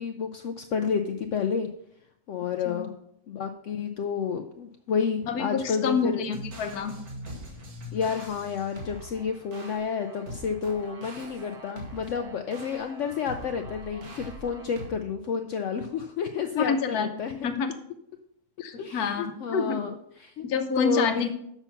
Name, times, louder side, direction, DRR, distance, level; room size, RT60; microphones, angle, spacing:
voice 1, 0.0-1.7 2.3-2.9 3.3-6.2 7.9-17.5 18.8-19.9 20.2-20.4 20.8-21.3, left 6 dB, 65° left, 6 dB, 0.8 m, -30 dB
voice 2, 5.3-6.9 16.6-17.1 17.4-17.7 18.6-19.8 20.4-21.3, left 5 dB, 80° left, 7 dB, 1.3 m, -28 dB
sound 1, 6.3-14.9, equal, 80° right, 1.9 m, -42 dB
7.0 x 5.8 x 5.7 m, 0.75 s
omnidirectional pair, 1.6 m